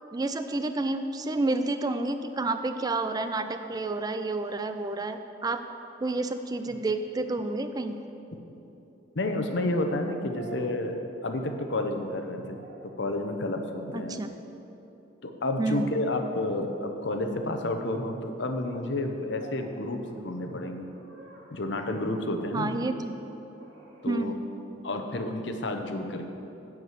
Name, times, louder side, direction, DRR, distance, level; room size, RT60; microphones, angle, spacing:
voice 1, 0.1-5.6 6.0-8.0 13.9-14.3 15.6-15.9 22.5-23.1 24.1-24.4, right 2 dB, 20° right, 9 dB, 0.3 m, -30 dB
voice 2, 9.2-12.6 13.0-14.2 15.2-20.8 21.5-22.7 24.0-24.3 24.8-26.3, left 1 dB, 65° left, 5 dB, 0.8 m, -30 dB
sound 1, 10.3-11.6 12.0-13.0 15.7-16.0 19.4-22.9 23.6-24.1, right 3 dB, 85° right, 1.9 m, -53 dB
10.5 x 4.7 x 8.1 m, 3.0 s
head